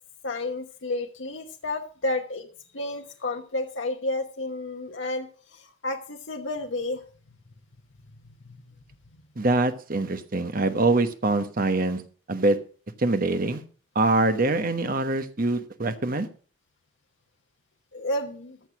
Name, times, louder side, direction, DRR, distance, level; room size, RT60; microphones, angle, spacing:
voice 1, 0.2-2.5 2.7-7.0 8.4-8.6 17.9-18.6, left 2 dB, 75° left, 1.1 m, -31 dB
voice 2, 9.4-12.0 12.3-12.6 13.0-13.6 13.9-16.3, right 2 dB, 45° right, 1.1 m, -24 dB
14.0 x 6.5 x 6.1 m
head